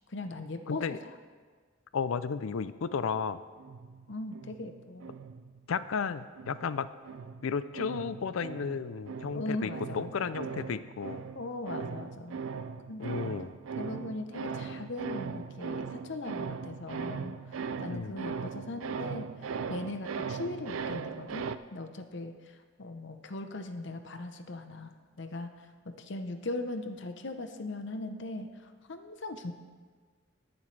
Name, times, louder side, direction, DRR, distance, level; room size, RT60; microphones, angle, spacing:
voice 1, 0.1-0.9 4.1-5.1 9.3-10.7 11.3-12.4 12.9-13.2 13.8-29.5, left 2 dB, 60° left, 7 dB, 0.8 m, -39 dB
voice 2, 0.7-1.0 1.9-3.4 5.7-6.9 7.4-11.3 13.0-13.5 17.9-18.1, left 5 dB, 90° left, 14 dB, 0.5 m, -33 dB
sound 1, 3.6-6.0 6.4-21.6, right 6 dB, 85° right, 0.4 m, -39 dB
21.5 x 7.1 x 3.3 m, 1.6 s
head